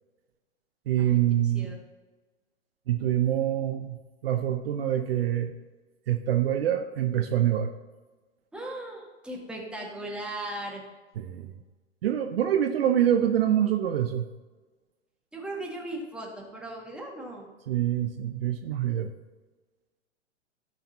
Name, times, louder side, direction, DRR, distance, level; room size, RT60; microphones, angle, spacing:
voice 1, 0.9-1.8 2.9-5.5 6.1-7.7 11.2-11.5 12.0-14.3 17.7-19.1, right 11 dB, 55° right, 7 dB, 0.8 m, -25 dB
voice 2, 8.5-10.8 15.3-17.4, right 1 dB, 5° right, -2 dB, 1.8 m, -37 dB
15.0 x 6.6 x 2.9 m, 1.3 s
figure-of-eight pair, 105°, 35 cm